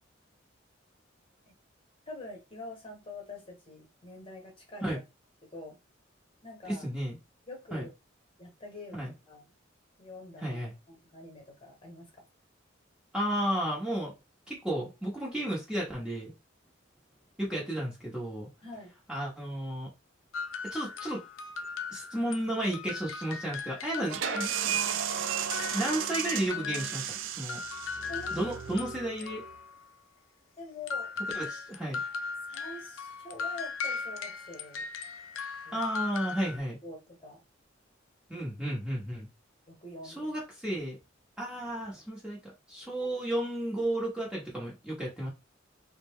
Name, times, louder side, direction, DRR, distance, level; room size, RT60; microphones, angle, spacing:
voice 1, 2.1-4.9 5.4-5.8 6.4-6.9 7.5-7.9 8.4-9.5 10.0-10.6 10.9-12.2 18.6-18.9 24.0-25.0 28.1-28.5 30.6-31.1 32.5-34.8 35.6-35.7 36.8-37.4 39.7-40.3 43.0-43.1, left 2 dB, 30° left, 1.2 m, -45 dB
voice 2, 6.6-7.2 7.7-7.9 8.9-9.1 10.4-10.7 13.1-14.1 14.5-16.3 17.4-18.5 19.1-19.9 20.6-21.2 21.9-24.5 25.7-27.6 28.3-29.4 31.3-32.0 35.7-36.8 38.3-39.3 40.0-41.0 41.4-45.3, right 1 dB, 5° right, 1.0 m, -33 dB
sound 1, 20.3-22.5 22.7-27.1 27.5-29.9 30.9-36.6, left 5 dB, 90° left, 0.5 m, -38 dB
sound 2, 24.1-29.5, right 8 dB, 70° right, 0.4 m, -34 dB
3.7 x 2.2 x 3.6 m
head